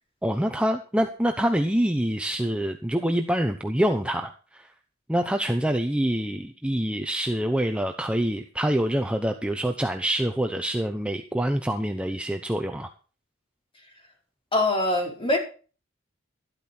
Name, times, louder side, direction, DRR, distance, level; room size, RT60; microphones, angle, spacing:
voice 1, 0.2-4.7 5.1-12.9, equal, 5° right, 5 dB, 0.9 m, -26 dB
voice 2, 14.5-15.4, left 2 dB, 25° left, 0 dB, 4.8 m, -23 dB
12.5 x 12.0 x 4.4 m, 0.37 s
head